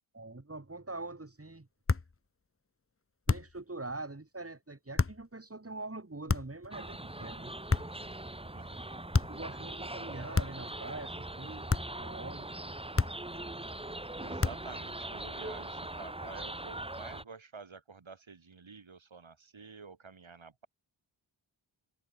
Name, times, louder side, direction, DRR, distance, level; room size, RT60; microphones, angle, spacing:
voice 1, 0.1-1.7 3.3-7.5 9.3-12.5, right 2 dB, 30° right, 5.1 m, -44 dB
sound 1, 1.9-2.2 3.3-3.6 5.0-5.2 6.3-6.7 7.7-8.1 9.1-9.5 10.3-10.7 11.7-12.0 13.0-13.4 14.4-14.8, left 4 dB, 25° left, 1.1 m, -30 dB
sound 2, 6.7-17.2, right 1 dB, 10° right, 1.4 m, -41 dB
voice 2, 8.5-9.0 14.2-20.7, right 5 dB, 70° right, 6.2 m, -50 dB
cardioid pair, 50°, 49 cm